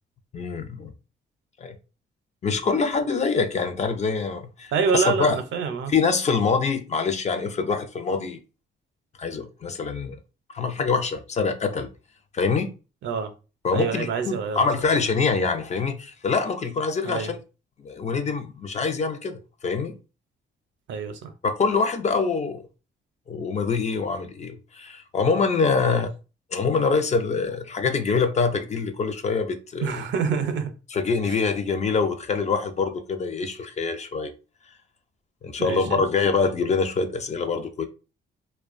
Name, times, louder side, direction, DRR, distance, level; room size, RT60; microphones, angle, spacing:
voice 1, 0.3-0.9 1.6-1.8 2.4-5.4 5.9-8.4 9.2-10.2 10.5-11.9 12.3-12.7 13.6-17.4 17.8-19.9 21.4-22.6 23.3-26.1 26.5-30.0 30.9-34.3 35.4-37.8, left 4 dB, 35° left, 0.4 m, -25 dB
voice 2, 4.7-5.9 13.0-13.3 13.7-14.7 17.0-17.3 20.9-21.3 25.8-26.0 29.8-30.7 35.6-36.0, right 6 dB, 70° right, 0.5 m, -26 dB
2.4 x 2.2 x 2.4 m
cardioid pair, 90°, 20 cm